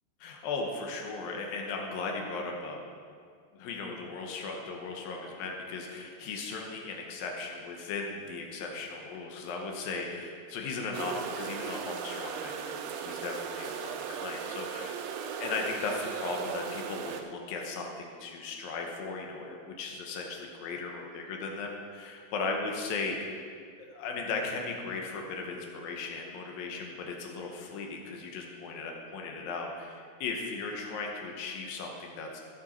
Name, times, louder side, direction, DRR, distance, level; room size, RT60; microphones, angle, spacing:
voice 1, 0.2-2.8 3.5-23.4 23.8-32.4, left 3 dB, 70° left, 1 dB, 2.3 m, -37 dB
sound 1, 10.9-17.2, right 7 dB, 85° right, 3.0 m, -37 dB
15.0 x 6.9 x 4.4 m, 2.1 s
omnidirectional pair, 5.3 m